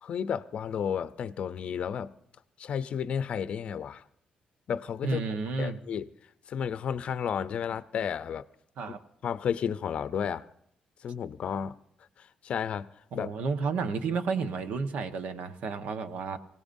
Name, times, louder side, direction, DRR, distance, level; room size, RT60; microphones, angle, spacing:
voice 1, 0.0-2.1 2.6-4.0 4.7-6.1 6.5-8.4 9.2-10.5 11.0-11.7 12.2-12.9 13.1-13.3, left 8 dB, 55° left, 0.6 m, -32 dB
voice 2, 5.0-5.8 8.8-9.0 13.1-16.4, right 4 dB, 75° right, 1.2 m, -31 dB
25.0 x 17.5 x 2.6 m
cardioid pair, 145°, 2 cm